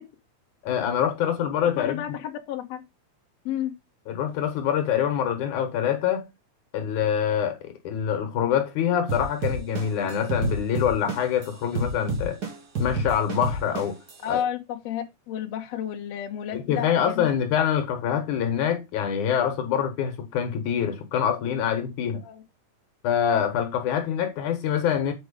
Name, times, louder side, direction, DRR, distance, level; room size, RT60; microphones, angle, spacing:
voice 1, 0.6-2.0 4.1-6.3 6.7-12.4 12.8-14.0 14.3-14.4 16.5-22.3 23.0-25.1, left 8 dB, 85° left, 2.8 m, -25 dB
voice 2, 1.8-2.8 3.5-3.7 14.2-17.2 22.2-22.4, left 10 dB, 60° left, 2.2 m, -31 dB
sound 1, 9.1-11.4 11.7-14.1, right 2 dB, 35° right, 2.1 m, -28 dB
7.8 x 4.7 x 5.1 m
omnidirectional pair, 3.4 m